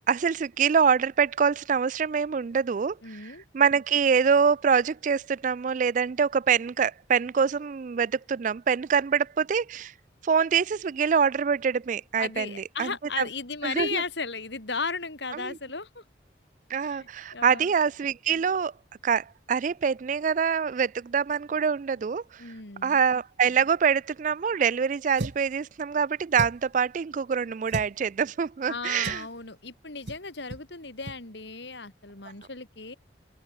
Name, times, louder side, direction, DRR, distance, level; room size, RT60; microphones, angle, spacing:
voice 1, 0.1-9.9 10.2-12.9 13.2-13.3 13.6-14.0 15.3-15.6 16.7-18.7 19.0-22.4 22.8-29.2, right 6 dB, 45° right, 0.3 m, -25 dB
voice 2, 3.0-3.4 12.2-16.0 16.8-17.7 22.4-23.0 28.7-33.0, left 4 dB, 70° left, 3.2 m, -35 dB
sound 1, 25.2-25.5 26.3-26.8 27.7-27.9 29.0-29.3 30.1-30.2 30.5-30.7 31.0-31.2, right 2 dB, 65° right, 1.3 m, -35 dB
open air
head